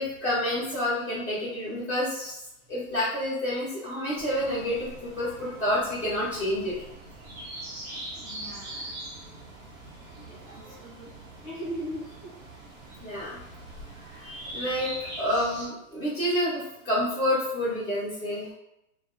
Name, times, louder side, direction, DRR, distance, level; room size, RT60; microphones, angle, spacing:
voice 1, 0.0-2.4 2.7-6.7 10.5-10.7 13.0-13.4 14.0-14.9 15.2-18.5, left 1 dB, 5° right, -15 dB, 1.0 m, -29 dB
sound 1, 4.2-15.7, right 1 dB, 80° right, 0.8 m, -42 dB
voice 2, 8.1-8.9 10.0-11.1 11.4-12.4, equal, 20° left, -10 dB, 0.4 m, -39 dB
2.6 x 2.0 x 2.5 m, 0.86 s
hypercardioid pair, 165°, 41 cm